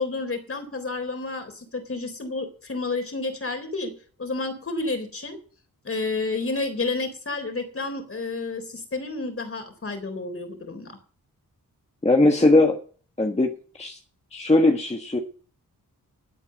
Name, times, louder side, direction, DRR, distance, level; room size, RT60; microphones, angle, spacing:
voice 1, 0.0-3.9 4.2-5.4 5.8-11.0, left 3 dB, 40° left, 6 dB, 3.7 m, -30 dB
voice 2, 12.0-12.8 13.2-14.0 14.3-15.2, left 2 dB, 20° left, 3 dB, 1.4 m, -20 dB
12.5 x 8.2 x 6.9 m, 0.41 s
wide cardioid pair, 145°, 35 cm